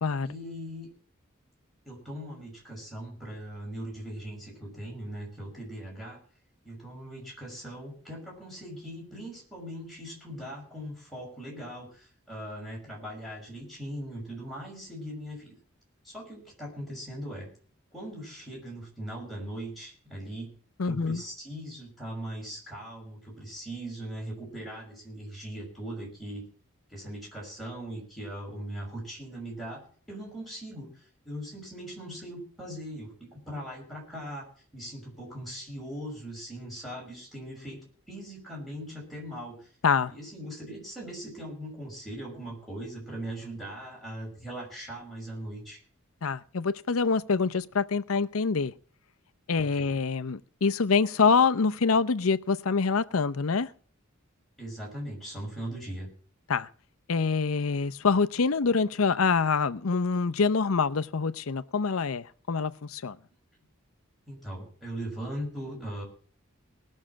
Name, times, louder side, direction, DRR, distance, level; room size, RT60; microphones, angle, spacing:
voice 1, 0.2-0.9 1.8-6.2 6.6-15.5 16.0-17.5 17.9-20.5 20.8-26.4 26.9-34.5 34.7-37.8 38.1-39.7 40.1-45.8 49.6-49.9 54.6-56.1 64.3-66.0, right 1 dB, ahead, 6.1 m, -40 dB
voice 2, 20.8-21.2 39.8-40.1 46.2-48.7 49.5-53.7 56.5-56.7 57.1-63.2, left 5 dB, 90° left, 0.7 m, -25 dB
19.0 x 6.4 x 7.4 m
head